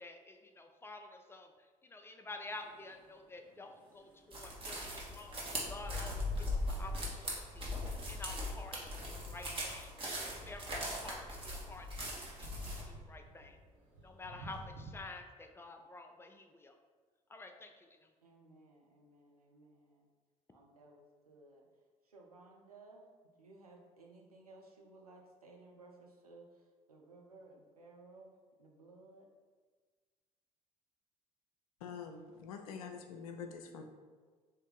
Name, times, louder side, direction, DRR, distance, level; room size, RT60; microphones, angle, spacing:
voice 1, 0.0-13.6 14.0-16.7 17.3-18.1, left 2 dB, 15° left, 4 dB, 0.4 m, -50 dB
sound 1, 2.5-14.9, right 1 dB, 70° right, 0.9 m, -57 dB
sound 2, 4.3-12.8, left 1 dB, 30° right, 1.2 m, -40 dB
voice 2, 18.2-20.1 20.5-21.6 22.1-23.1 23.4-26.5 26.9-28.3 28.6-29.3, right 2 dB, 90° right, 0 dB, 0.5 m, -58 dB
voice 3, 31.8-33.8, left 6 dB, 75° left, 5 dB, 0.4 m, -46 dB
3.5 x 2.7 x 3.8 m, 1.5 s
figure-of-eight pair, 50°, 19 cm